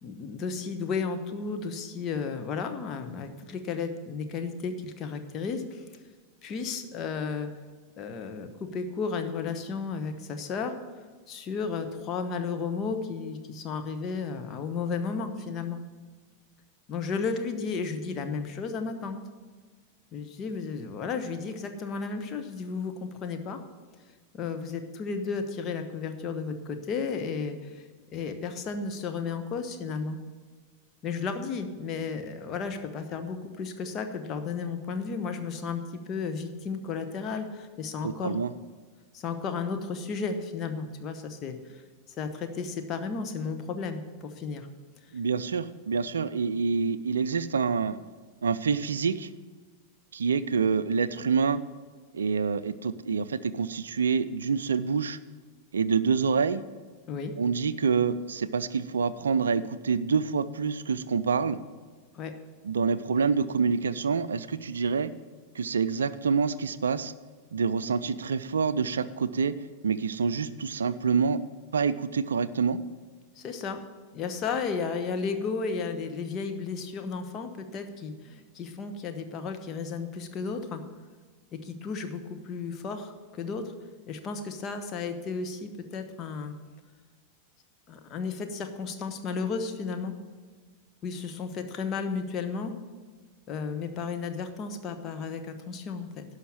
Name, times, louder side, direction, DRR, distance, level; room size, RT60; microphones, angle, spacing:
voice 1, 0.0-5.8 6.4-7.5 8.0-10.7 11.3-15.8 16.9-19.2 20.1-23.6 24.3-27.8 28.1-30.2 31.0-35.8 36.1-38.4 39.1-41.8 42.2-44.7 57.1-57.3 62.1-62.3 73.4-73.8 74.1-80.8 81.5-86.5 87.9-90.2 91.0-92.7 93.5-96.2, left 5 dB, 30° left, 7 dB, 1.0 m, -33 dB
voice 2, 38.0-38.5 45.1-48.0 48.4-49.3 50.1-51.6 52.1-55.2 55.7-56.6 57.4-61.6 62.6-65.1 65.5-67.1 67.5-69.6 69.8-71.4 71.7-72.8, right 5 dB, 70° right, 15 dB, 0.4 m, -27 dB
11.5 x 5.7 x 7.5 m, 1.5 s
figure-of-eight pair, 90°, 0 cm